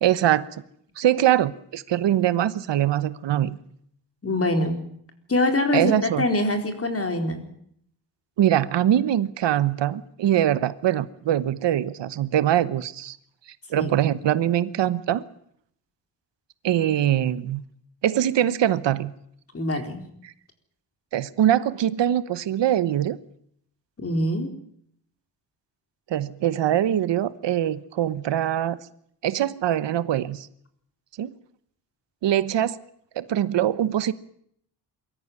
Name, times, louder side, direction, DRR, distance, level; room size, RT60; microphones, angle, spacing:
voice 1, 0.0-0.4 1.0-3.6 5.7-6.2 8.4-13.2 13.7-15.2 16.6-17.6 18.0-19.1 20.2-20.3 21.1-23.2 26.1-28.8 29.2-30.5 31.2-31.3 32.2-32.8 33.2-34.1, right 11 dB, 80° right, 15 dB, 1.2 m, -23 dB
voice 2, 4.2-4.8 5.3-7.5 13.7-13.9 19.5-20.0 24.0-24.5, left 1 dB, 30° left, 6 dB, 4.2 m, -24 dB
23.5 x 13.5 x 9.6 m, 0.68 s
cardioid pair, 110°, 42 cm